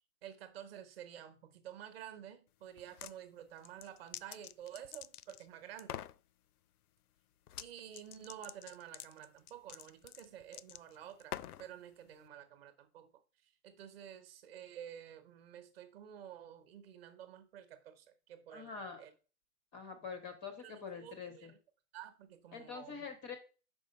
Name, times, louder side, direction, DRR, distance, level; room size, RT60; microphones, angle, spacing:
voice 1, 0.2-6.0 7.6-13.1 13.4-19.1 20.6-21.6 21.9-23.1, right 10 dB, 40° right, 1.1 m, -51 dB
sound 1, 2.8-3.2 3.6-5.5 5.8-6.2 7.5-7.7 7.9-11.7, left 12 dB, 75° left, 0.5 m, -46 dB
voice 2, 18.5-19.0 19.7-21.5 22.5-23.3, left 5 dB, 10° left, 0.4 m, -45 dB
5.4 x 4.7 x 5.3 m
hypercardioid pair, 155°, 46 cm